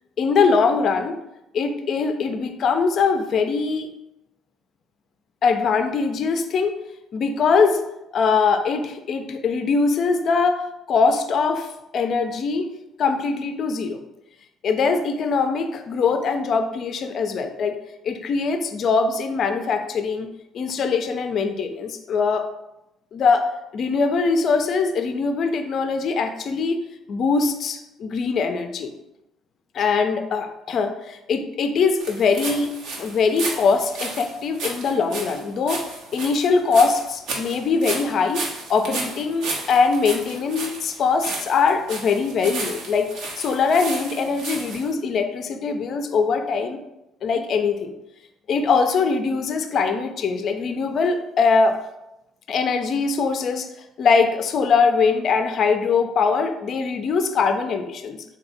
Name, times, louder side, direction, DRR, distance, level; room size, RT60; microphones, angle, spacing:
voice 1, 0.2-1.1 1.5-3.9 5.4-6.8 7.1-7.8 8.1-10.6 10.9-12.7 13.0-14.0 14.6-17.8 18.0-20.3 20.5-22.5 23.1-23.4 23.7-26.8 27.1-28.9 29.7-35.8 36.1-38.4 38.7-46.8 47.2-47.9 48.5-51.8 52.5-53.7 54.0-58.2, left 5 dB, 55° left, 7 dB, 0.4 m, -22 dB
sound 1, 32.0-44.9, right 3 dB, 75° right, 0.8 m, -33 dB
3.3 x 2.7 x 3.9 m, 0.90 s
hypercardioid pair, 60°, 0 cm